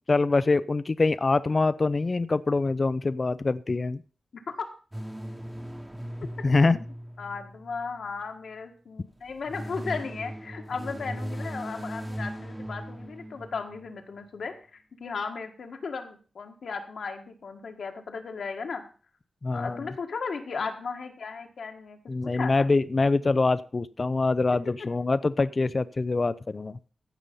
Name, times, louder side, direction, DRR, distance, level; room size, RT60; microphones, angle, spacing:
voice 1, 0.0-4.0 6.4-6.8 19.4-19.9 22.1-26.8, left 3 dB, 40° left, 15 dB, 0.4 m, -24 dB
voice 2, 4.3-4.7 6.5-6.6 7.2-18.8 19.5-22.0 22.3-22.5, left 5 dB, 80° left, 4 dB, 1.7 m, -36 dB
sound 1, 4.9-8.3 9.2-14.0, equal, 10° right, 1.2 m, -38 dB
15.0 x 5.5 x 5.4 m, 0.40 s
cardioid pair, 70°, 0 cm